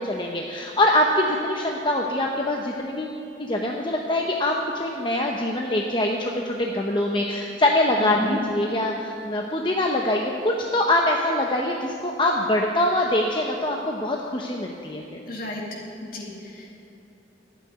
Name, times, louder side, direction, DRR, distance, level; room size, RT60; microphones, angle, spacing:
voice 1, 0.0-15.2, left 1 dB, 25° left, 0 dB, 0.8 m, -24 dB
voice 2, 8.0-8.4 15.3-16.7, left 1 dB, 55° left, -1 dB, 2.3 m, -33 dB
12.5 x 8.5 x 9.1 m, 2.9 s
head